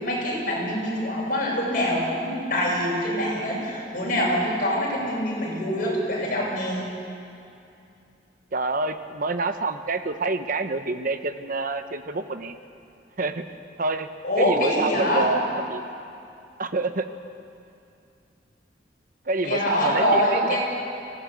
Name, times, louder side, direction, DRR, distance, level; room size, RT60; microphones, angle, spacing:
voice 1, 0.0-6.8 14.2-15.2 19.4-20.6, equal, 50° left, -4 dB, 8.0 m, -24 dB
voice 2, 8.5-12.5 13.2-13.4 13.8-14.1 14.4-15.9 16.6-17.1 19.3-20.6, right 3 dB, 50° right, 8 dB, 1.0 m, -27 dB
25.0 x 17.5 x 8.5 m, 2.6 s
head